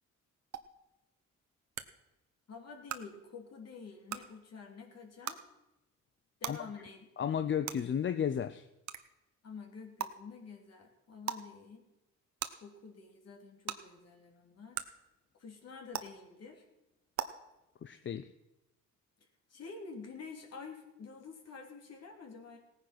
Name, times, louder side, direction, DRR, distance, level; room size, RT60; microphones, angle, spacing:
sound 1, 0.5-0.6 1.7-1.8 2.9-3.0 4.1-4.2 5.2-5.4 6.4-6.5 7.6-7.7 8.9-9.0 10.0-10.1 11.2-11.4 12.4-12.5 13.7-13.8 14.7-14.8 15.9-16.0 17.1-17.2, right 10 dB, 65° right, 1.1 m, -36 dB
voice 1, 2.5-5.4 6.4-7.1 9.4-11.8 12.6-14.8 15.4-16.6 19.5-22.6, left 5 dB, 55° left, 2 dB, 3.2 m, -49 dB
voice 2, 7.2-8.7 17.8-18.3, left 8 dB, 40° left, 12 dB, 0.6 m, -33 dB
17.0 x 9.7 x 6.0 m, 0.96 s
cardioid pair, 90°, 30 cm